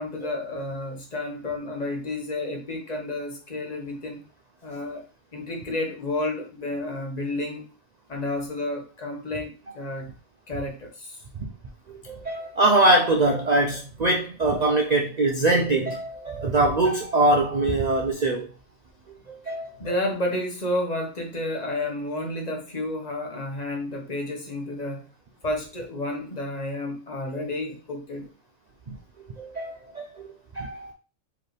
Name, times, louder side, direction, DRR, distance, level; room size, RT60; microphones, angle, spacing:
voice 1, 0.0-4.2 4.6-5.0 5.3-7.7 8.1-10.1 10.5-11.2 19.8-25.1 25.4-28.3, left 1 dB, 35° left, 1.2 m, -31 dB
voice 2, 11.9-18.5 19.3-19.8 28.9-29.0 29.4-30.3 30.5-30.9, right 2 dB, 50° right, 0.5 m, -23 dB
4.8 x 3.4 x 3.2 m
omnidirectional pair, 1.3 m